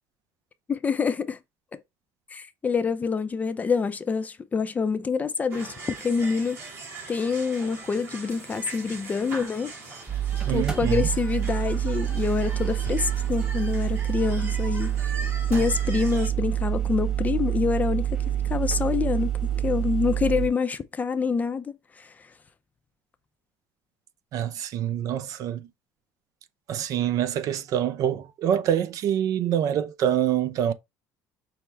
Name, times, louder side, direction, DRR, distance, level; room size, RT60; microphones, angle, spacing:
voice 1, 0.7-1.4 2.3-6.6 7.1-9.7 10.5-15.0 15.5-18.2 18.5-19.3 19.6-22.1, left 5 dB, 20° left, 0.5 m, -26 dB
sound 1, 5.5-16.3, right 3 dB, 40° right, 2.3 m, -41 dB
sound 2, 10.1-20.5, right 11 dB, 10° right, 1.3 m, -27 dB
voice 2, 10.4-11.1 24.3-25.7 26.7-30.7, right 10 dB, 55° right, 0.5 m, -26 dB
5.9 x 2.1 x 3.3 m
cardioid pair, 125°, 7 cm